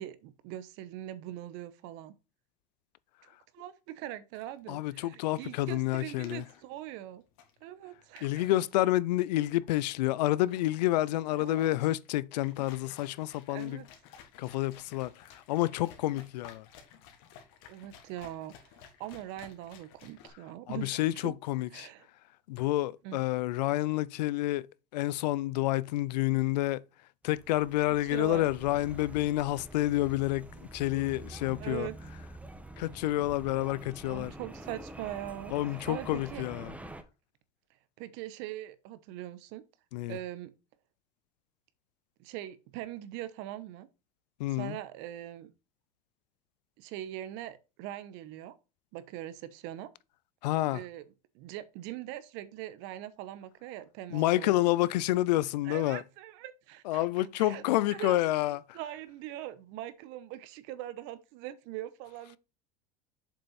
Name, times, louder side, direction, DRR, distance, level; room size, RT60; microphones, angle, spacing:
voice 1, 0.0-2.1 3.2-7.2 7.6-8.5 11.4-11.7 13.5-13.9 17.7-21.4 21.7-22.1 23.0-23.2 28.0-28.5 31.5-32.0 34.1-36.4 38.0-39.6 40.1-40.5 42.2-43.9 44.5-45.5 46.8-48.5 48.9-49.9 50.7-51.0 51.3-54.6 55.6-57.6 57.9-62.4, right 13 dB, 65° right, 1.2 m, -42 dB
sound 1, 4.3-20.3, left 8 dB, 70° left, 2.1 m, -55 dB
voice 2, 4.7-6.4 8.2-13.8 14.4-15.1 15.5-16.6 20.7-21.9 22.5-24.6 24.9-26.8 27.2-30.5 30.7-31.9 32.8-34.3 35.5-36.7 39.9-40.2 44.4-44.8 50.4-50.8 54.1-56.0 56.9-58.8, left 16 dB, 85° left, 0.5 m, -29 dB
sound 2, 27.2-37.0, right 2 dB, 5° right, 1.2 m, -46 dB
7.3 x 5.5 x 4.3 m
supercardioid pair, 100°, 21 cm